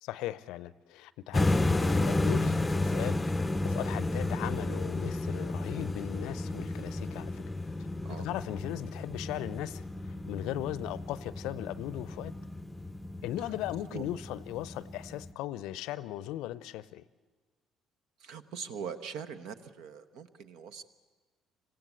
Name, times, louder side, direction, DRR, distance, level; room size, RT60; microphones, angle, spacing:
voice 1, 0.0-7.4 8.2-12.3 13.2-17.0, left 14 dB, 65° left, 17 dB, 0.6 m, -38 dB
sound 1, 1.3-15.3, left 2 dB, 15° left, 0.6 m, -32 dB
voice 2, 18.2-20.8, right 7 dB, 60° right, 11 dB, 1.0 m, -42 dB
26.0 x 16.0 x 8.1 m, 1.4 s
figure-of-eight pair, 50°, 0 cm